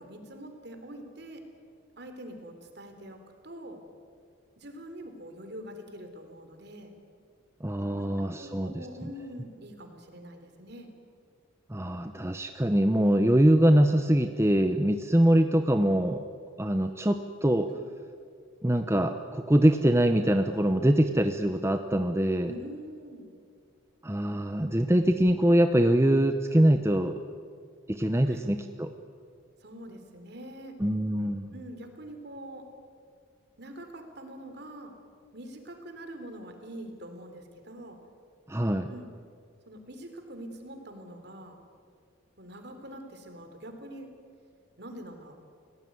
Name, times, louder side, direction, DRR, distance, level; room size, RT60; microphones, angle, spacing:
voice 1, 0.0-1.4 2.0-3.8 4.6-6.9 7.9-10.9 17.7-17.8 22.4-23.3 28.3-28.5 29.6-30.8 31.5-32.7 33.6-34.9 35.3-38.0 38.9-39.1 39.7-41.6 42.4-44.1 44.8-45.4, right 1 dB, 55° right, 6 dB, 3.7 m, -44 dB
voice 2, 7.6-8.8 11.7-16.2 16.6-17.7 18.6-22.5 24.0-27.2 27.9-28.9 30.8-31.5 38.5-38.9, right 1 dB, 15° right, 7 dB, 0.8 m, -23 dB
30.0 x 18.0 x 9.5 m, 2.2 s
head